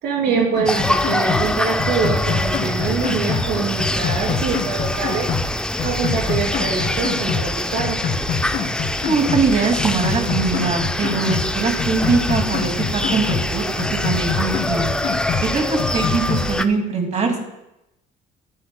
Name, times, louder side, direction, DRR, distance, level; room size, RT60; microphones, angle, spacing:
voice 1, 0.0-5.3 5.8-8.0, right 5 dB, 75° right, 0 dB, 2.9 m, -24 dB
sound 1, 0.5-1.5 1.8-3.5 3.8-5.5 5.8-7.5 7.8-9.5 9.8-11.5 11.8-13.5 13.8-15.5 15.8-16.5, left 5 dB, 65° left, 2.0 m, -26 dB
sound 2, 0.7-16.7, left 1 dB, 5° left, 0.4 m, -25 dB
voice 2, 9.0-14.9 15.4-17.4, right 4 dB, 45° right, 3 dB, 2.3 m, -22 dB
13.0 x 11.5 x 2.2 m, 0.91 s
cardioid pair, 110°, 17 cm